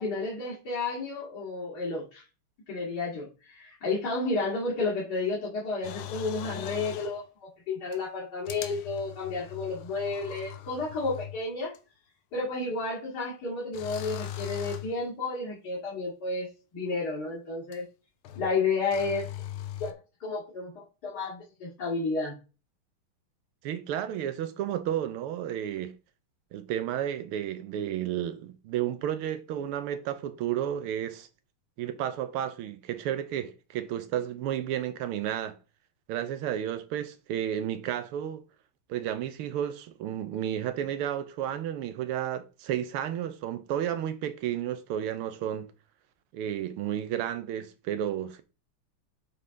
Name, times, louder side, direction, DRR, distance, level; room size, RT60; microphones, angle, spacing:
voice 1, 0.0-2.2 2.7-11.7 12.3-17.9 18.4-19.3 19.8-19.9 20.2-22.4, left 3 dB, 50° left, 2.5 m, -31 dB
Espresso machine, 5.8-7.2 7.9-8.0 8.5-11.4 11.7-11.8 13.7-15.0 17.7-17.8 18.2-18.6 18.9-19.9, left 12 dB, 80° left, 1.5 m, -40 dB
voice 2, 23.6-25.9 26.5-31.3 31.8-35.5 36.1-38.4 38.9-45.7 46.3-48.4, right 10 dB, 90° right, 1.7 m, -32 dB
7.9 x 3.7 x 3.8 m
omnidirectional pair, 2.3 m